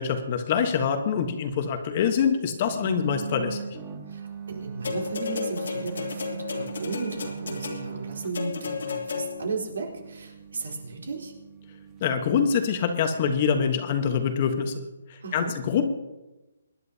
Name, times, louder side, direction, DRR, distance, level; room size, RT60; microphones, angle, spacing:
voice 1, 0.0-3.6 12.0-14.7 15.3-15.9, left 7 dB, 30° left, 7 dB, 1.2 m, -25 dB
sound 1, 2.7-13.5, right 7 dB, 15° right, 1.6 m, -40 dB
voice 2, 4.1-11.3 15.2-15.6, right 4 dB, 85° right, 0 dB, 3.6 m, -35 dB
sound 2, 4.8-9.6 10.6-10.7, left 5 dB, 80° left, 2.4 m, -33 dB
25.0 x 10.5 x 2.8 m, 1.0 s
hypercardioid pair, 165°, 0 cm